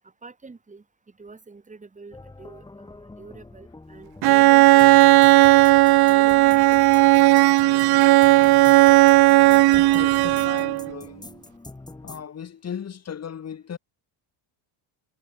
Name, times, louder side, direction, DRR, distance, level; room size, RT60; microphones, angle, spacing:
voice 1, 0.2-0.8 1.2-5.6 6.1-7.1 7.7-8.2, right 4 dB, 15° right, 6.8 m, -46 dB
sound 1, 2.1-12.2, left 2 dB, 10° left, 2.9 m, -44 dB
Bowed string instrument, 4.2-10.9, right 19 dB, 50° right, 0.6 m, -15 dB
voice 2, 9.7-11.2 12.0-13.8, left 8 dB, 30° left, 5.1 m, -36 dB
cardioid pair, 165°, 48 cm